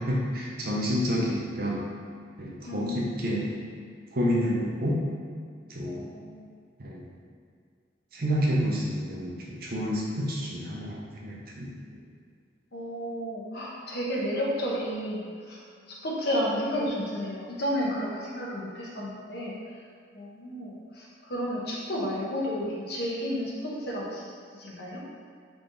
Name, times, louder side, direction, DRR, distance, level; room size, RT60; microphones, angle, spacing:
voice 1, 0.1-1.8 2.4-3.5 4.1-5.0 5.7-6.1 6.8-7.0 8.1-11.8, equal, 50° right, -4 dB, 0.8 m, -29 dB
voice 2, 2.7-3.6 5.8-6.4 12.7-15.2 15.5-15.6 16.0-19.5 20.1-24.3 24.6-25.0, equal, 60° left, -5 dB, 0.9 m, -32 dB
3.7 x 3.4 x 3.8 m, 2.1 s
head